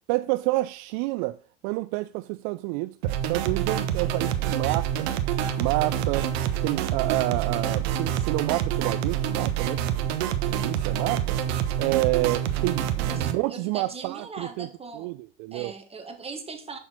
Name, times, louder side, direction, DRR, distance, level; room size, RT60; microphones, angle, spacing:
voice 1, 0.1-1.4 1.6-5.1 5.6-6.3 6.6-10.1 10.5-11.4 11.8-14.7 14.9-15.7, right 20 dB, 60° right, 0.4 m, -29 dB
sound 1, 3.0-13.3, right 10 dB, 75° right, 1.0 m, -27 dB
voice 2, 13.1-15.1 15.5-16.8, right 4 dB, 20° right, 1.5 m, -40 dB
6.7 x 5.7 x 4.4 m
hypercardioid pair, 100°, 32 cm